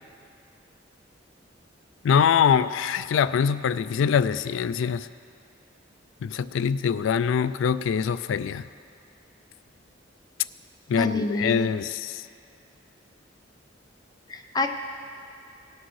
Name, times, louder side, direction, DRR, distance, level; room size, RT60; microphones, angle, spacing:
voice 1, 2.0-5.1 6.2-8.7 10.9-12.2, left 7 dB, 85° left, 14 dB, 0.3 m, -23 dB
voice 2, 11.0-11.7 14.3-14.7, left 2 dB, 20° left, 4 dB, 0.7 m, -27 dB
18.5 x 6.4 x 4.7 m, 2.4 s
head